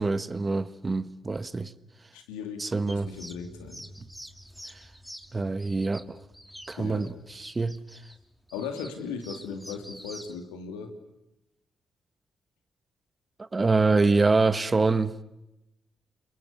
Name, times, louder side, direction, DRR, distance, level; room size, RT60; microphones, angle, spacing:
voice 1, 0.0-1.7 2.6-3.1 5.3-6.2 6.7-7.8 13.4-15.1, right 3 dB, 30° right, 1.5 m, -25 dB
voice 2, 2.1-3.8 6.7-7.1 8.5-10.9, left 6 dB, 85° left, 2.8 m, -37 dB
sound 1, 2.9-10.4, equal, ahead, 3.2 m, -47 dB
29.5 x 22.5 x 8.2 m
hypercardioid pair, 45°, 0 cm